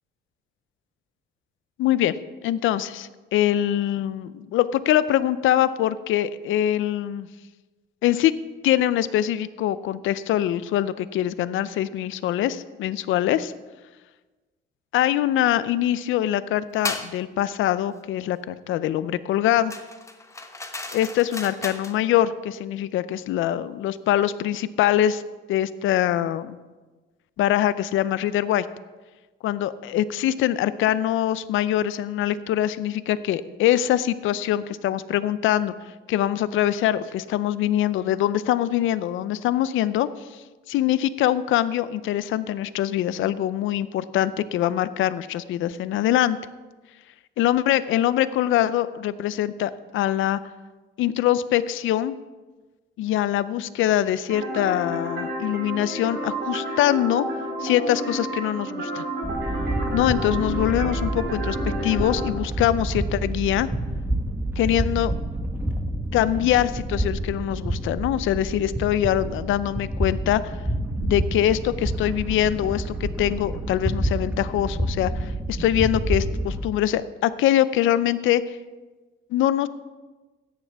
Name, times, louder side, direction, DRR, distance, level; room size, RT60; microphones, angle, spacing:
voice 1, 1.8-2.1 2.4-7.3 8.0-8.3 8.6-13.5 14.9-19.7 20.9-25.2 25.5-26.6 27.4-28.7 29.4-35.7 36.1-40.1 40.7-46.4 47.4-50.4 51.0-52.2 53.0-57.3 57.6-59.0 59.9-61.6 61.8-63.7 64.6-65.1 66.1-70.5 71.0-78.4 79.3-79.7, left 12 dB, 80° left, 15 dB, 0.5 m, -23 dB
sound 1, 16.8-17.1 19.7-22.0, left 2 dB, 15° left, 1.1 m, -34 dB
sound 2, 54.3-62.3, right 1 dB, 65° right, 3.5 m, -31 dB
sound 3, 59.2-76.7, right 1 dB, 10° right, 1.2 m, -28 dB
14.0 x 9.8 x 3.5 m, 1.2 s
cardioid pair, 90°, 20 cm